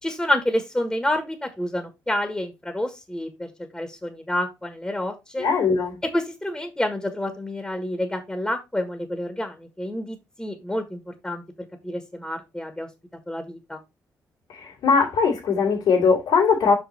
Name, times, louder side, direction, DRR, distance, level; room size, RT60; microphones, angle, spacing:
voice 1, 0.0-5.5 6.0-11.4 11.8-12.9 13.3-13.8, left 1 dB, 10° left, 1.6 m, -28 dB
voice 2, 5.4-6.0 14.5-16.7, left 5 dB, 85° left, 2.8 m, -20 dB
5.7 x 5.3 x 4.2 m
cardioid pair, 85°, 7 cm